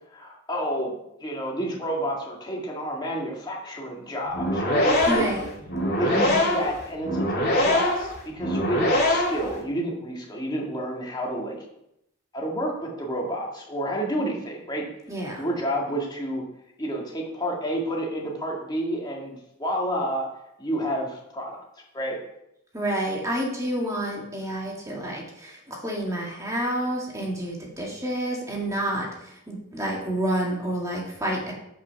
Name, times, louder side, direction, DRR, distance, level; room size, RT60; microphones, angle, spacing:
voice 1, 0.1-5.2 6.0-7.2 7.5-11.6 12.3-14.8 15.4-16.4 16.8-20.3 20.6-21.6 21.9-22.2, equal, 20° left, -2 dB, 2.0 m, -29 dB
sound 1, 4.3-9.5, left 1 dB, 45° left, 2.5 m, -23 dB
voice 2, 5.0-5.5 15.1-15.4 22.7-31.5, right 1 dB, 15° right, -2 dB, 1.9 m, -29 dB
8.5 x 5.6 x 5.9 m, 0.80 s
head